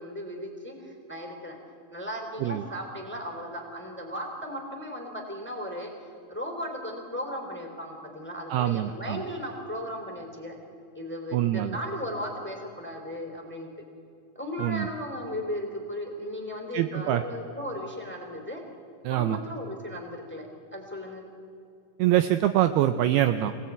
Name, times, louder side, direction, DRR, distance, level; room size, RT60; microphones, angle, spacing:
voice 1, 0.0-1.6 1.9-5.9 6.3-10.5 10.9-13.7 14.3-18.6 19.1-21.2, equal, 5° left, 2 dB, 2.1 m, -36 dB
voice 2, 8.5-9.2 11.3-11.8 14.6-14.9 16.7-17.2 19.0-19.4 22.0-23.5, right 13 dB, 85° right, 10 dB, 2.2 m, -24 dB
25.5 x 18.0 x 9.3 m, 2.6 s
omnidirectional pair, 5.4 m